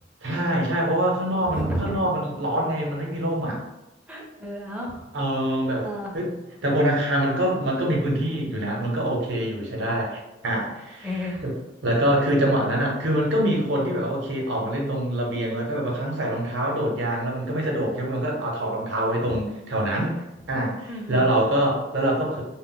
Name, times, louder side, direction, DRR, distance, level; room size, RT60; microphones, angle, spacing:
voice 1, 0.2-3.6 5.1-5.9 6.1-6.3 6.6-11.1 11.4-11.5 11.8-20.1 20.5-22.4, right 1 dB, 70° right, -1 dB, 0.7 m, -25 dB
voice 2, 1.5-2.0 4.1-5.0 5.8-6.1 11.0-11.4 19.3-19.4 20.9-21.3, equal, 5° right, -2 dB, 0.5 m, -31 dB
2.1 x 2.0 x 3.7 m, 0.96 s
head